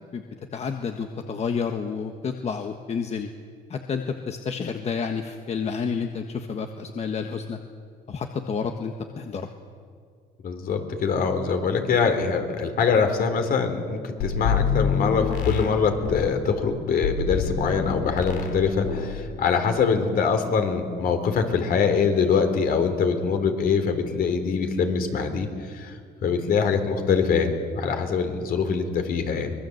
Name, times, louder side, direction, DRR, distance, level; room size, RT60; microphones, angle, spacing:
voice 1, 0.5-3.3 3.7-7.6 8.1-9.5, left 5 dB, 40° left, 5 dB, 1.5 m, -30 dB
voice 2, 10.4-26.0 26.2-29.5, left 5 dB, 60° left, 7 dB, 3.5 m, -24 dB
sound 1, 14.2-16.3 17.0-18.6 18.8-19.2, left 6 dB, 85° left, 3.3 m, -26 dB
24.5 x 20.5 x 8.0 m, 2.1 s
cardioid pair, 110°, 17 cm